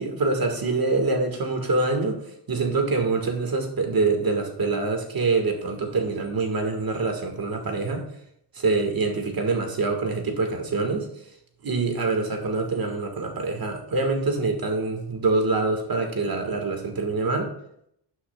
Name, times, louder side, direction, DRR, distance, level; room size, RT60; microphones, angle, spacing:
voice 1, 0.0-2.2 2.5-8.0 8.6-11.1 11.6-17.5, right 3 dB, 50° right, 4 dB, 1.7 m, -25 dB
12.0 x 9.9 x 2.3 m, 0.72 s
wide cardioid pair, 125°, 44 cm